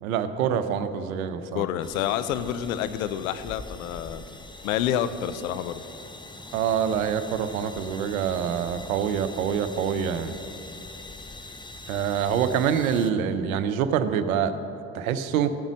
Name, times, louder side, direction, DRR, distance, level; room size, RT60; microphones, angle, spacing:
voice 1, 0.0-1.6 6.5-10.3 11.9-14.6 14.9-15.6, right 8 dB, 80° right, 11 dB, 0.7 m, -26 dB
voice 2, 1.5-4.2 4.6-5.8, left 10 dB, 80° left, 13 dB, 0.6 m, -28 dB
sound 1, 1.8-13.1, left 2 dB, 10° left, 1.0 m, -43 dB
14.0 x 9.0 x 6.2 m, 2.8 s
figure-of-eight pair, 50°, 41 cm